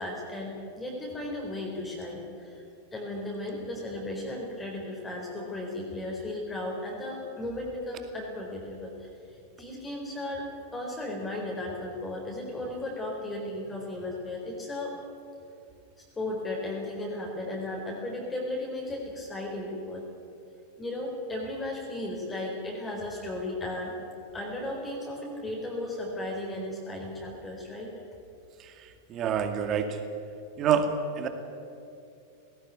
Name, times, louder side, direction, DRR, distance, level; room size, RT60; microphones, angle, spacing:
voice 1, 0.0-2.6 2.9-14.9 16.2-20.1 20.8-23.9 24.3-27.9, left 1 dB, 15° left, -2 dB, 4.3 m, -35 dB
voice 2, 28.6-30.0 30.6-31.3, right 7 dB, 35° right, 8 dB, 2.3 m, -28 dB
19.0 x 18.0 x 9.7 m, 2.7 s
figure-of-eight pair, 90°, 0 cm